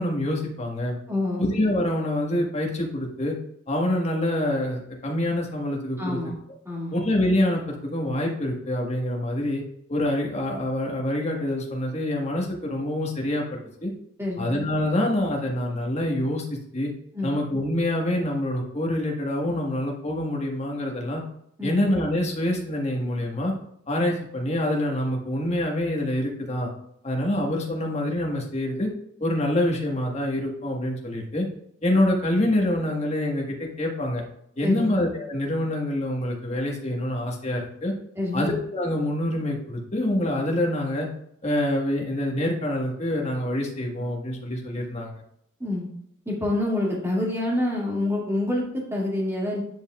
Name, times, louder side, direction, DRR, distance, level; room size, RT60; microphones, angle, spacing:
voice 1, 0.0-1.0 1.4-3.3 3.7-6.2 6.9-9.6 9.9-13.4 13.8-13.9 14.4-16.9 17.2-21.2 21.6-23.5 23.9-26.7 27.0-28.9 29.2-31.4 31.8-34.2 34.6-37.9 38.3-41.1 41.4-45.1, left 1 dB, 35° left, 0 dB, 1.5 m, -26 dB
voice 2, 1.1-1.4 6.0-6.4 6.7-7.0 14.2-14.5 17.1-17.3 21.6-21.8 34.6-34.9 38.2-38.5 45.6-45.9 46.3-49.6, left 1 dB, 15° right, -4 dB, 2.1 m, -27 dB
9.5 x 5.3 x 2.4 m, 0.72 s
head